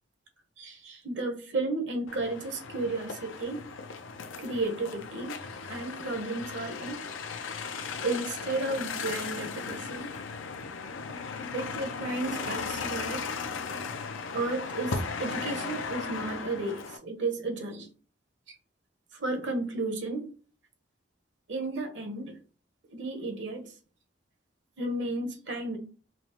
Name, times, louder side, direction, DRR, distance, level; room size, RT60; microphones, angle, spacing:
voice 1, 0.6-3.6 4.4-7.0 8.0-10.1 11.5-13.2 14.3-17.9 18.5-18.6 19.1-20.3 21.5-22.3 22.9-23.7 24.8-25.8, right 2 dB, 70° right, 5 dB, 0.9 m, -33 dB
sound 1, 2.1-17.0, left 5 dB, 90° left, 0.5 m, -37 dB
5.1 x 2.1 x 2.9 m, 0.38 s
head